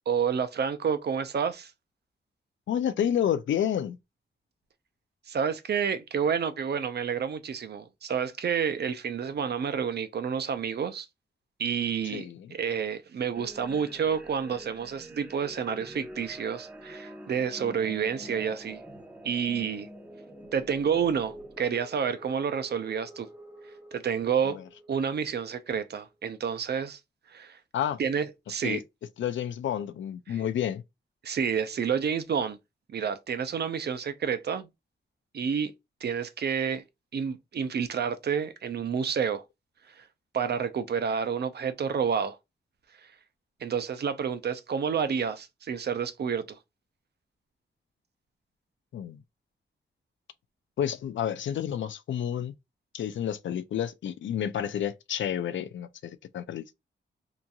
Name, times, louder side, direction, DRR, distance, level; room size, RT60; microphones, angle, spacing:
voice 1, 0.1-1.7 5.3-11.1 11.6-18.8 19.2-19.9 20.5-23.3 23.9-24.6 24.9-27.0 27.3-27.6 28.0-28.8 30.3-30.4 31.2-32.6 32.9-34.7 35.3-35.7 36.0-36.8 37.1-39.4 39.9-40.1 40.3-42.4 43.0-43.1 43.6-46.6, right 7 dB, 60° right, 0.5 m, -29 dB
voice 2, 2.7-4.0 12.1-12.5 24.4-24.6 27.7-28.0 28.6-28.8 29.2-30.8 48.9-49.2 50.8-52.5 52.9-56.7, left 9 dB, 85° left, 0.4 m, -30 dB
sound 1, 13.3-26.1, right 1 dB, 10° right, 0.8 m, -47 dB
2.9 x 2.5 x 2.3 m
wide cardioid pair, 90°, 19 cm